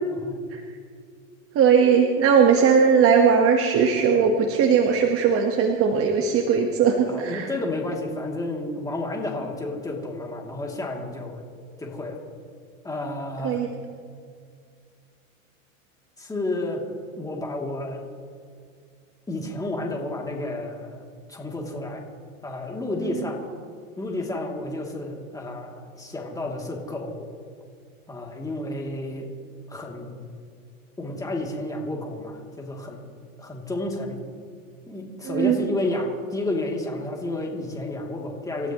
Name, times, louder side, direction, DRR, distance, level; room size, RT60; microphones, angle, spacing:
voice 1, 1.5-7.5 13.4-13.7 23.0-23.2 35.2-35.6, right 6 dB, 35° right, 3 dB, 1.5 m, -19 dB
voice 2, 7.1-11.4 11.8-12.2 12.8-13.6 16.2-16.8 17.2-18.0 19.3-22.0 22.4-23.4 24.0-27.3 28.1-29.3 29.7-30.1 31.0-33.0 33.4-34.2 34.9-38.7, left 2 dB, 10° left, -1 dB, 2.9 m, -31 dB
28.0 x 15.0 x 3.2 m, 2.1 s
supercardioid pair, 130°, 41 cm